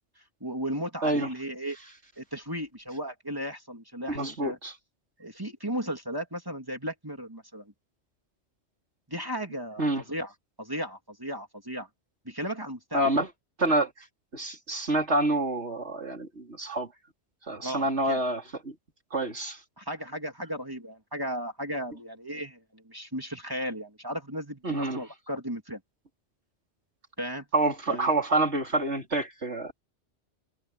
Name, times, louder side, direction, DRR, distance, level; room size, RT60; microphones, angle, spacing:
voice 1, 0.4-1.8 2.2-4.6 5.2-7.7 9.1-10.3 10.6-11.9 12.2-13.0 17.6-18.2 19.8-25.8 27.2-27.5 27.9-28.0, equal, 20° right, 3.3 m, -35 dB
voice 2, 4.1-4.7 9.8-10.0 12.9-13.3 13.6-13.9 14.3-16.9 17.5-18.7 19.1-19.6 24.6-25.0 27.5-29.7, right 2 dB, 70° right, 4.5 m, -27 dB
omnidirectional pair, 1.2 m